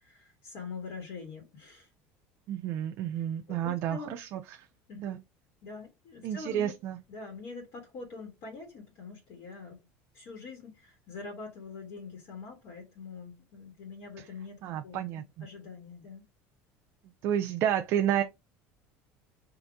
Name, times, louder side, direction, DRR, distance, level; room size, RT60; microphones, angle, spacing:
voice 1, 0.0-1.9 3.5-4.2 4.9-5.1 5.6-6.7 7.1-9.8 10.1-16.3, left 4 dB, 50° left, 1.4 m, -44 dB
voice 2, 2.5-4.7 5.0-5.2 6.2-7.0 14.2-14.3 14.6-15.5 17.2-18.2, right 10 dB, 50° right, 0.4 m, -31 dB
3.9 x 2.5 x 3.5 m
cardioid pair, 160°, 5 cm